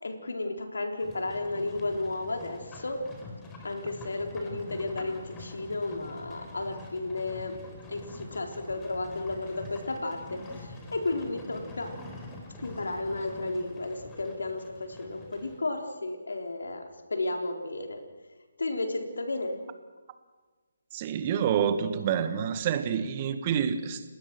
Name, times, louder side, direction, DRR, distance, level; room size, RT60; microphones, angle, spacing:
voice 1, 0.0-3.0 3.6-7.5 7.9-11.9 12.6-18.0 18.6-19.6, left 2 dB, 75° left, 4.2 m, -33 dB
Livestock farm animals working animals, 1.0-15.6, left 2 dB, 15° left, 4.3 m, -46 dB
voice 2, 20.9-24.0, right 8 dB, 30° right, 1.9 m, -28 dB
29.0 x 19.5 x 6.2 m
figure-of-eight pair, 145°, 0 cm